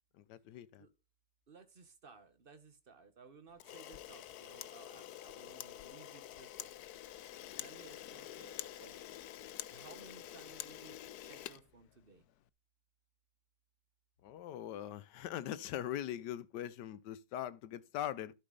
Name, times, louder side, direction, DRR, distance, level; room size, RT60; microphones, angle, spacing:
voice 1, 0.3-0.8 14.2-18.3, left 11 dB, 90° left, 1.3 m, -41 dB
voice 2, 1.5-6.7 7.6-9.2 9.7-12.2, right 5 dB, 35° right, 1.4 m, -58 dB
Camera, 3.6-12.3, left 12 dB, 70° left, 1.1 m, -48 dB
12.0 x 5.6 x 3.9 m
omnidirectional pair, 1.8 m